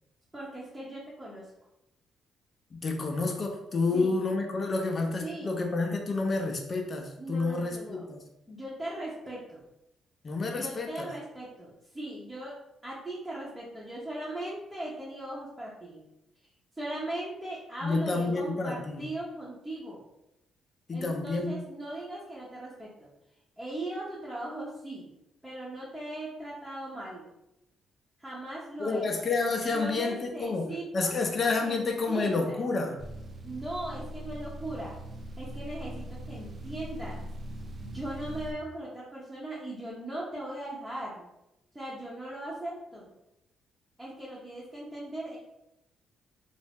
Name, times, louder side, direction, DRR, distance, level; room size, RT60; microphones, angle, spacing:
voice 1, 0.3-1.5 3.9-4.2 5.2-5.6 7.2-8.0 8.5-9.6 10.5-12.6 12.8-16.0 16.8-20.0 20.9-23.1 23.6-25.1 25.4-27.3 28.2-29.0 29.6-31.2 31.6-32.6 33.4-35.0 35.4-37.2 37.8-41.3 41.7-43.1 44.0-45.4, right 1 dB, 10° right, -7 dB, 0.8 m, -39 dB
voice 2, 2.7-8.2 10.2-11.1 17.8-19.0 20.9-21.6 28.8-33.0, left 3 dB, 40° left, 2 dB, 0.5 m, -29 dB
sound 1, 33.0-38.5, right 1 dB, 45° right, 0.3 m, -41 dB
2.5 x 2.1 x 3.4 m, 0.87 s
cardioid pair, 90°, 0 cm